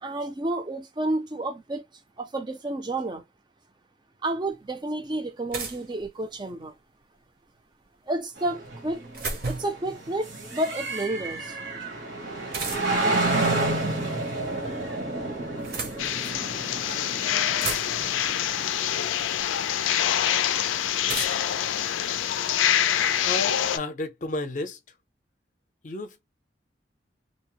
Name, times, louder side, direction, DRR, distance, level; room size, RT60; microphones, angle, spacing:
voice 1, 0.0-1.8 2.2-3.2 4.2-6.8 8.1-9.0 9.3-11.6, right 1 dB, 25° right, 0.4 m, -30 dB
sound 1, 4.5-4.6 5.5-6.6 8.6-9.9 12.5-13.1 14.3-14.9 15.4-16.4 17.1-17.2 17.3-18.2 19.4-19.5 21.1-22.6, right 4 dB, 50° right, 0.8 m, -35 dB
sound 2, 8.4-19.1, right 2 dB, 75° right, 1.3 m, -30 dB
sound 3, 16.0-23.8, left 10 dB, 90° left, 0.3 m, -25 dB
voice 2, 23.2-24.8 25.8-26.3, left 2 dB, 40° left, 0.5 m, -32 dB
2.8 x 2.0 x 2.8 m
head